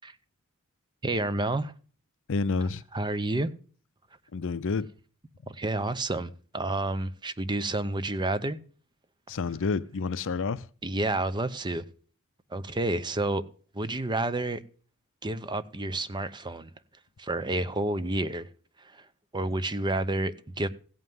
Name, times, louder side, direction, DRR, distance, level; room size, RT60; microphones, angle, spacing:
voice 1, 1.0-1.7 2.9-3.5 5.5-8.6 10.8-11.8 12.5-13.4 13.7-14.6 15.2-16.7 17.2-18.5 18.9-19.0 19.3-20.7, right 2 dB, 20° right, 0.8 m, -29 dB
voice 2, 2.3-2.8 4.3-4.9 9.3-10.7, left 4 dB, 60° left, 0.5 m, -29 dB
16.0 x 5.6 x 9.4 m
head